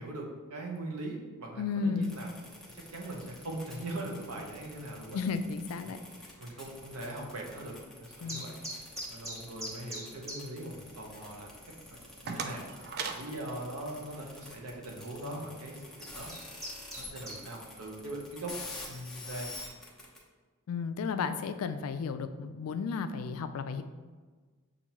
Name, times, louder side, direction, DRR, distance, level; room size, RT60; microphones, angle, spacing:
voice 1, 0.0-2.3 2.7-5.2 5.8-5.9 6.4-8.6 9.1-11.5 12.2-12.6 13.1-16.3 16.9-18.5 18.9-19.5, right 1 dB, 90° right, 0 dB, 0.8 m, -41 dB
voice 2, 1.6-2.1 5.1-6.0 8.2-8.5 20.7-23.8, left 5 dB, 70° left, 9 dB, 0.3 m, -33 dB
sound 1, 2.0-20.2, left 2 dB, ahead, 0.8 m, -47 dB
sound 2, 8.3-10.4 10.7-10.8 11.3-11.4 11.6-12.1 12.7-12.8 14.1-14.2 15.0-15.2 15.8-17.4, equal, 15° right, 1.3 m, -41 dB
sound 3, 11.8-14.6, right 5 dB, 50° right, 0.4 m, -41 dB
6.9 x 2.6 x 2.9 m, 1.4 s
head